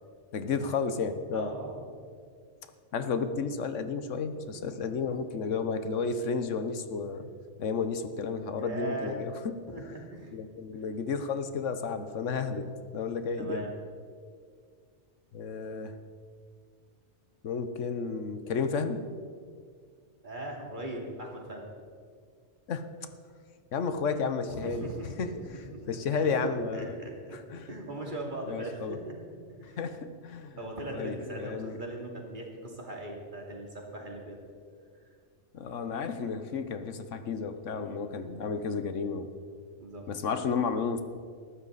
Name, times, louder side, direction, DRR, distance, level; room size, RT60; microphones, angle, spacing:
voice 1, 0.3-1.5 2.9-7.3 7.6-9.6 10.3-13.7 15.3-16.0 17.4-19.1 22.7-22.9 23.7-27.0 27.3-27.7 28.5-29.0 29.8-30.6 30.9-31.8 35.5-39.3 40.1-41.0, left 5 dB, 85° left, 10 dB, 1.3 m, -32 dB
voice 2, 1.3-1.9 5.0-5.1 6.0-6.1 8.5-9.1 9.7-10.3 10.7-10.9 12.2-12.5 13.4-13.7 20.2-21.7 24.4-29.1 29.6-29.8 30.6-34.4 37.7-38.1 39.8-40.1, right 1 dB, 40° right, -1 dB, 2.8 m, -40 dB
19.5 x 14.0 x 4.1 m, 2.1 s
omnidirectional pair, 1.2 m